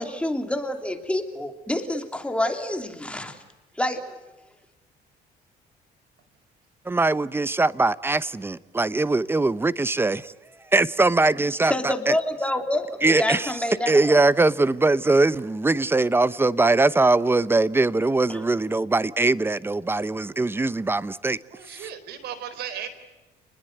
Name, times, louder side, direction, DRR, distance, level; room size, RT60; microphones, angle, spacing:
voice 1, 0.0-3.4 3.8-4.0 11.6-14.2 18.3-18.4, left 1 dB, 5° left, 3.1 m, -27 dB
voice 2, 6.9-10.3 10.7-12.1 13.0-13.5 13.9-21.4 21.7-21.9, right 2 dB, 15° right, 0.9 m, -21 dB
voice 3, 21.5-22.9, right 9 dB, 75° right, 4.4 m, -35 dB
29.5 x 21.0 x 8.0 m
cardioid pair, 110°, 17 cm